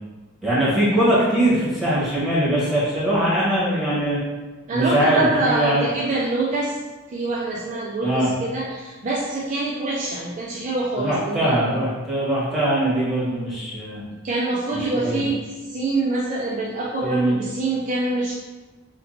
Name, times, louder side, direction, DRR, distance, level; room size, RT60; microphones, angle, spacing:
voice 1, 0.4-4.2 4.7-5.8 8.0-8.3 11.0-14.0 14.7-15.2 17.0-17.3, right 1 dB, ahead, -9 dB, 1.2 m, -21 dB
voice 2, 4.7-6.8 7.1-11.5 14.2-18.3, right 2 dB, 35° right, -4 dB, 0.4 m, -25 dB
2.8 x 2.2 x 3.9 m, 1.3 s
head